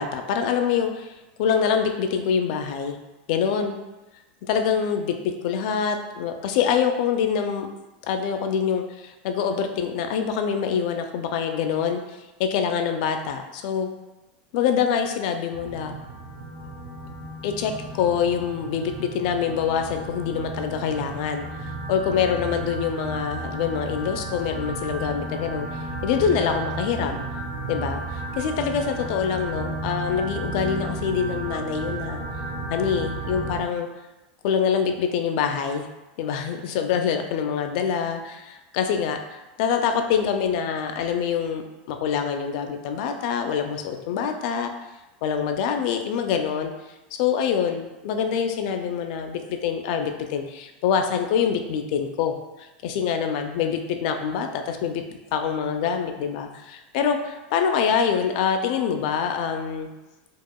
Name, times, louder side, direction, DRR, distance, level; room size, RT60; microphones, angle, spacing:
voice 1, 0.0-3.0 3.3-3.8 4.4-7.7 8.1-12.0 12.4-13.9 14.5-15.9 17.4-25.7 26.0-27.2 27.7-32.2 32.7-33.9 34.4-35.9 36.2-41.6 41.9-44.7 45.2-46.7 47.1-59.9, left 7 dB, 55° left, 6 dB, 0.4 m, -25 dB
sound 1, 15.5-33.6, right 2 dB, 75° right, 1.1 m, -33 dB
4.7 x 2.4 x 2.2 m, 1.0 s
supercardioid pair, 155°, 5 cm